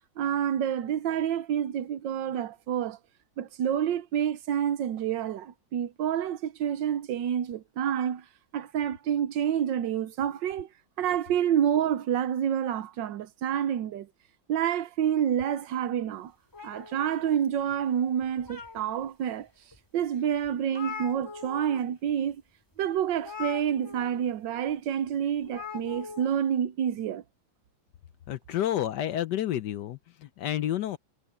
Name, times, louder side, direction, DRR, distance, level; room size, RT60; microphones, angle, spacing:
voice 1, 0.2-3.0 3.4-8.2 8.5-10.7 11.0-14.1 14.5-16.3 16.6-19.5 19.9-22.4 22.8-27.2, right 9 dB, 85° right, 1.5 m, -28 dB
sound 1, 16.5-17.7 18.2-19.1 19.7-19.8 20.2-20.3 20.4-21.8 22.1-22.3 23.2-24.2 25.4-26.3, left 6 dB, 15° left, 2.8 m, -41 dB
voice 2, 28.3-30.0 30.4-31.0, left 12 dB, 75° left, 1.3 m, -29 dB
omnidirectional pair, 1.9 m